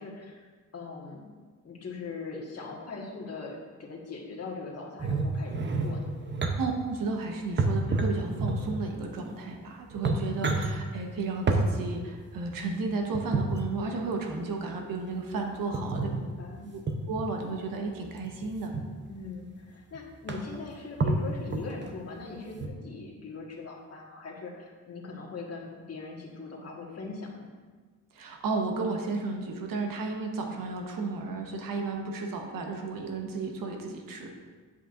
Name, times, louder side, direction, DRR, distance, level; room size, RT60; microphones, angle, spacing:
voice 1, 0.0-1.3 1.6-6.1 15.7-16.6 19.1-27.5, left 4 dB, 50° left, -1 dB, 1.6 m, -41 dB
sound 1, 5.0-6.6 7.6-8.8 9.5-9.6 9.9-10.7 11.5-11.7 13.1-13.6 15.7-16.2 16.9-17.2 18.2-18.8 19.6-19.7 19.9-20.0 20.3-20.6 21.0-21.9 22.5-22.7, right 3 dB, 35° right, 0.8 m, -28 dB
voice 2, 6.6-16.1 16.7-16.8 17.1-18.7 28.1-34.3, right 3 dB, 85° right, 2 dB, 1.2 m, -33 dB
8.1 x 7.6 x 2.6 m, 1.4 s
cardioid pair, 95°, 33 cm